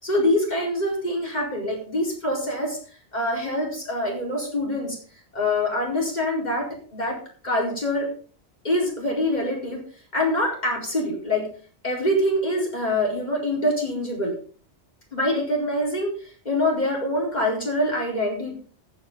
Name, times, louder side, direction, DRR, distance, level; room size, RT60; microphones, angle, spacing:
voice 1, 0.0-2.8 3.1-5.0 5.3-7.2 7.4-8.1 8.6-9.8 10.1-11.5 11.8-14.3 15.1-16.1 16.4-18.6, left 1 dB, 35° left, -2 dB, 4.6 m, -25 dB
14.5 x 9.5 x 3.9 m, 0.41 s
omnidirectional pair, 1.2 m